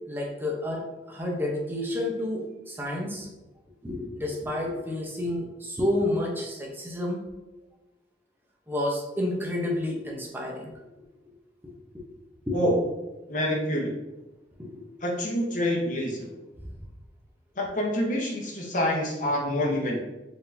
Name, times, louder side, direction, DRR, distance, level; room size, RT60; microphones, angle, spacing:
voice 1, 0.1-0.8 1.1-3.3 3.8-7.2 8.7-11.1 11.6-12.0 12.5-12.6 14.6-14.8, left 1 dB, 10° right, -1 dB, 0.8 m, -30 dB
voice 2, 13.3-13.9 15.0-16.3 17.6-20.0, equal, 45° left, -1 dB, 1.0 m, -27 dB
4.7 x 3.7 x 2.6 m, 1.1 s
head